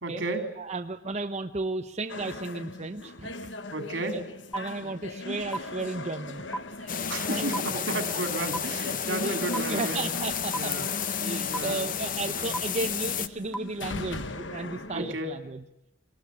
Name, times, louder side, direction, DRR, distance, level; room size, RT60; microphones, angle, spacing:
voice 1, 0.0-0.5 3.7-4.2 7.1-10.1 10.5-10.9 11.5-11.9 12.2-12.5 14.9-15.4, right 2 dB, 80° right, 6 dB, 3.7 m, -33 dB
voice 2, 0.6-3.3 4.1-4.2 4.5-6.4 6.8-7.0 7.3-7.4 9.2-10.8 11.2-15.6, right 3 dB, 35° right, 6 dB, 0.9 m, -34 dB
sound 1, 2.1-15.2, left 2 dB, 80° left, 1.2 m, -39 dB
sound 2, 4.5-4.6 5.5-5.6 6.5-6.6 7.5-7.6 8.5-8.6 9.5-9.6 10.5-10.6 11.5-11.6 12.5-12.6 13.5-13.6, right 2 dB, 5° left, 1.1 m, -30 dB
sound 3, 6.9-13.3, left 8 dB, 50° left, 0.9 m, -32 dB
23.0 x 20.0 x 9.6 m, 0.85 s
head